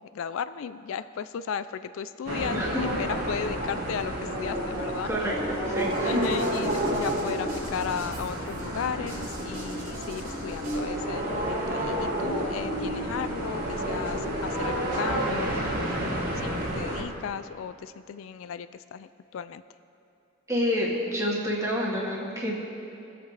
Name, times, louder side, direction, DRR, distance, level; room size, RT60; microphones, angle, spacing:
voice 1, 0.0-5.1 6.0-19.6, left 7 dB, 75° left, 13 dB, 0.4 m, -35 dB
sound 1, 2.3-17.0, right 1 dB, 45° right, 1.7 m, -30 dB
voice 2, 5.0-5.3 5.7-6.2 20.5-22.5, equal, 15° right, -4 dB, 1.8 m, -28 dB
sound 2, 5.7-10.8, right 2 dB, 75° right, 3.0 m, -47 dB
23.5 x 7.9 x 3.3 m, 2.7 s
head